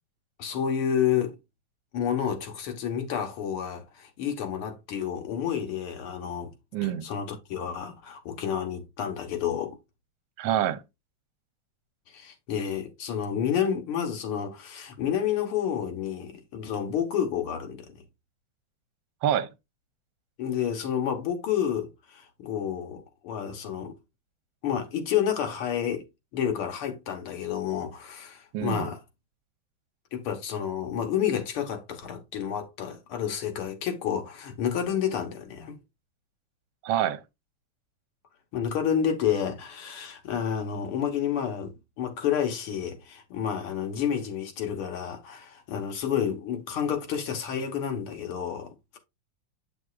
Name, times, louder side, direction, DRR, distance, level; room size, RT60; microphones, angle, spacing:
voice 1, 0.4-1.4 1.9-6.5 7.0-9.8 12.1-17.9 20.4-24.0 24.6-26.0 26.3-29.0 30.1-35.8 38.5-49.0, left 8 dB, 90° left, 2.0 m, -30 dB
voice 2, 6.7-7.0 10.4-10.8 19.2-19.5 28.5-28.9 36.8-37.2, right 10 dB, 70° right, 1.4 m, -26 dB
7.5 x 6.4 x 2.3 m
omnidirectional pair, 2.3 m